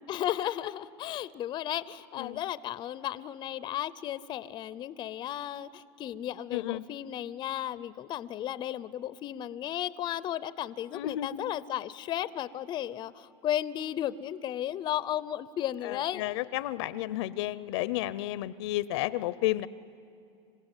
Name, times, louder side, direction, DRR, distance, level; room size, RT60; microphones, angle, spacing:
voice 1, 0.1-16.3, left 12 dB, 30° left, 17 dB, 0.5 m, -34 dB
voice 2, 6.5-6.8 10.9-11.5 15.8-19.7, left 15 dB, 70° left, 18 dB, 0.6 m, -32 dB
26.0 x 16.5 x 9.0 m, 2.5 s
supercardioid pair, 125°, 15 cm